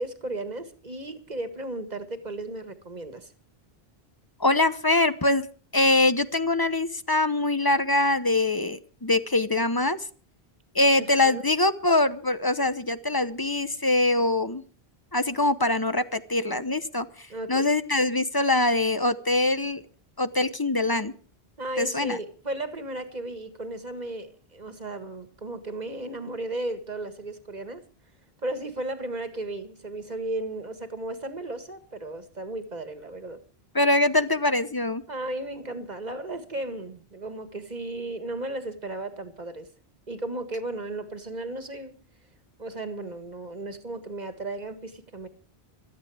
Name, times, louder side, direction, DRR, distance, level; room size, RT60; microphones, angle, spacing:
voice 1, 0.0-3.3 11.0-11.4 17.3-17.7 21.6-27.8 28.4-33.4 35.1-39.7 40.1-42.0 42.6-45.3, right 2 dB, 45° right, 1.9 m, -35 dB
voice 2, 4.4-5.5 5.7-10.0 10.7-14.6 15.1-19.8 20.2-21.1 21.8-22.2 33.7-35.0, left 2 dB, 25° left, 0.8 m, -23 dB
17.0 x 13.0 x 4.9 m
omnidirectional pair, 1.0 m